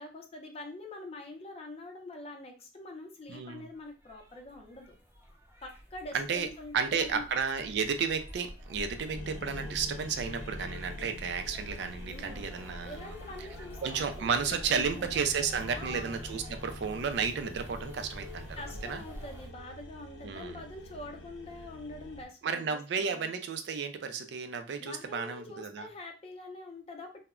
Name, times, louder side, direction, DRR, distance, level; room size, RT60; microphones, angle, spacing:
voice 1, 0.0-5.0 5.6-7.3 12.0-15.1 15.7-16.1 18.6-23.3 24.8-27.2, left 2 dB, 35° left, 3 dB, 0.5 m, -45 dB
sound 1, 3.3-19.5, equal, 15° right, 0.6 m, -48 dB
voice 2, 3.3-3.6 6.1-6.5 6.7-13.0 13.8-19.0 20.2-20.6 22.4-25.9, right 6 dB, 70° right, 8 dB, 0.4 m, -32 dB
sound 2, 9.1-22.3, left 1 dB, 85° left, 0.6 m, -46 dB
2.1 x 2.0 x 3.5 m, 0.32 s
head